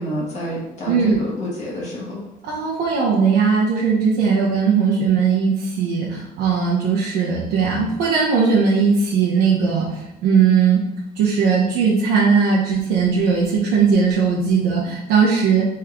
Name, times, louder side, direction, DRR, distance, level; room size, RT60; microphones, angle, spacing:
voice 1, 0.0-2.2, equal, 45° left, -6 dB, 1.3 m, -28 dB
voice 2, 0.9-1.2 2.4-10.8 11.1-15.6, right 5 dB, 90° right, -6 dB, 0.9 m, -18 dB
3.4 x 3.3 x 3.6 m, 0.90 s
cardioid pair, 110°, 17 cm